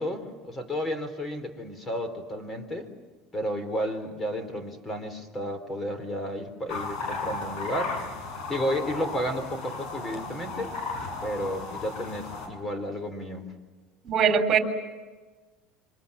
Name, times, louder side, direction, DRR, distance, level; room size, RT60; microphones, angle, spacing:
voice 1, 0.0-2.9 3.3-8.0 8.5-10.8 11.2-13.5, equal, 20° left, 9 dB, 3.8 m, -32 dB
sound 1, 6.7-12.5, left 3 dB, 60° left, 6.8 m, -35 dB
voice 2, 14.0-14.6, right 7 dB, 35° right, 6 dB, 3.6 m, -21 dB
27.5 x 25.0 x 7.1 m, 1.3 s
supercardioid pair, 125°, 0 cm